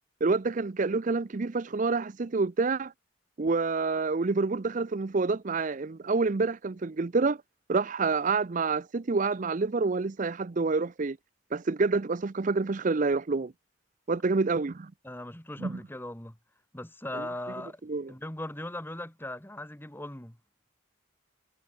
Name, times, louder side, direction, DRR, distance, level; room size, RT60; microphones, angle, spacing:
voice 1, 0.2-2.9 3.4-7.4 7.7-11.2 11.5-13.5 14.1-14.9 15.6-15.8 17.1-17.2 17.9-18.1, right 4 dB, 40° right, 0.5 m, -27 dB
voice 2, 15.0-16.4 16.7-17.8 18.1-20.4, left 1 dB, 10° left, 2.0 m, -39 dB
head